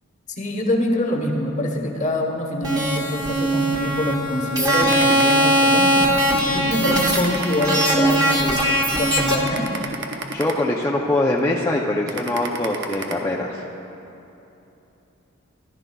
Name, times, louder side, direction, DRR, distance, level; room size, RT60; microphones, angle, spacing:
voice 1, 0.4-9.7, left 1 dB, 35° left, 2 dB, 1.1 m, -25 dB
sound 1, 2.6-9.3, right 1 dB, 20° right, 1.2 m, -20 dB
sound 2, 4.7-5.9 6.3-6.5 6.9-8.5 8.9-9.1 9.4-11.1 11.5-11.7 12.1-13.1, right 3 dB, 60° right, 0.8 m, -31 dB
voice 2, 10.3-13.6, left 1 dB, 15° left, -3 dB, 0.5 m, -23 dB
14.5 x 12.0 x 2.3 m, 2.9 s
head